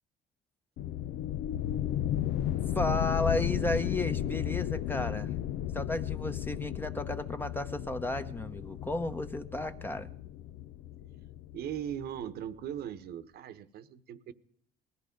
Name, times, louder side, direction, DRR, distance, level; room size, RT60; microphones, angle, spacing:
sound 1, 0.8-12.2, left 11 dB, 75° left, 0.6 m, -34 dB
voice 1, 2.7-5.3 5.7-10.1, left 2 dB, 10° left, 8 dB, 1.0 m, -33 dB
voice 2, 11.5-14.3, right 10 dB, 70° right, 12 dB, 1.1 m, -39 dB
19.5 x 13.5 x 5.2 m, 0.65 s
cardioid pair, 110°, 17 cm